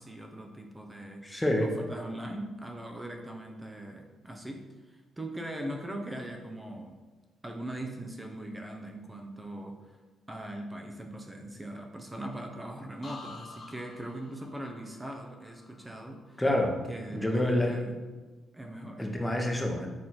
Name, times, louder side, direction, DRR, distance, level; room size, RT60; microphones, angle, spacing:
voice 1, 0.0-7.0 7.4-10.0 10.3-16.4 16.9-18.0 18.5-19.0, right 1 dB, 15° right, 2 dB, 0.7 m, -41 dB
voice 2, 1.2-1.7 16.4-16.8 17.1-17.7 19.0-19.9, left 1 dB, 10° left, 1 dB, 1.1 m, -27 dB
sound 1, 13.0-16.8 17.2-17.7, left 3 dB, 40° left, 1.3 m, -51 dB
6.5 x 3.5 x 4.3 m, 1.2 s
cardioid pair, 90°, 0 cm